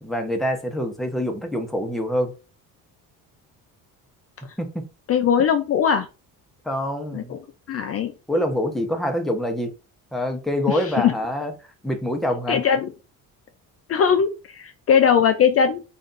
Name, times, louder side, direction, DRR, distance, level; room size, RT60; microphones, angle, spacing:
voice 1, 0.0-2.3 4.6-4.8 6.6-7.3 8.3-9.7 10.1-12.6, equal, ahead, 0.8 m, -25 dB
voice 2, 5.1-6.1 7.1-7.4 7.7-8.1 10.7-11.1 12.5-12.9 13.9-15.8, left 7 dB, 40° left, 0.5 m, -20 dB
3.2 x 2.6 x 3.9 m
cardioid pair, 105°, 37 cm